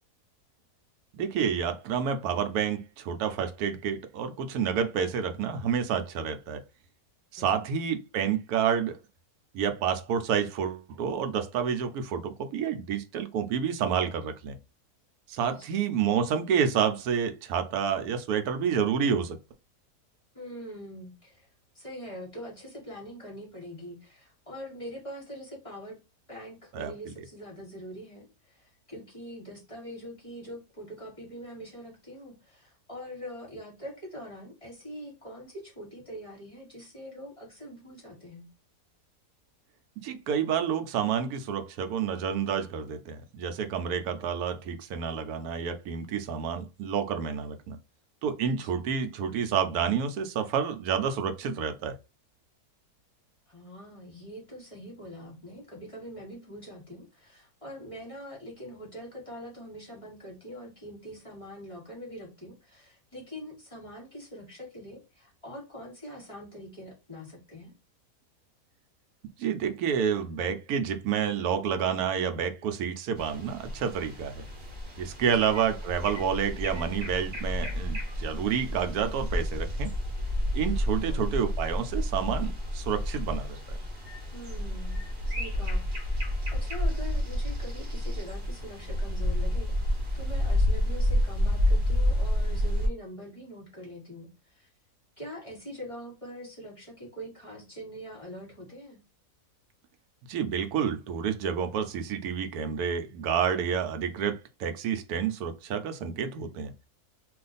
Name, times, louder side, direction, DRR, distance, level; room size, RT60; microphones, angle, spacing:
voice 1, 1.2-6.6 7.3-9.0 9.5-14.6 15.3-19.4 26.7-26.9 40.0-47.8 48.2-51.9 69.4-74.4 75.0-79.9 80.5-83.6 100.3-106.7, right 7 dB, 75° right, 1.0 m, -29 dB
voice 2, 7.4-7.7 15.4-15.8 20.3-21.5 21.7-26.0 26.3-38.5 48.5-48.9 53.5-67.7 81.1-81.2 84.3-94.7 95.2-99.0, equal, 25° left, 0.8 m, -43 dB
sound 1, 73.2-92.9, left 1 dB, 45° right, 0.9 m, -30 dB
2.4 x 2.4 x 3.9 m
omnidirectional pair, 1.7 m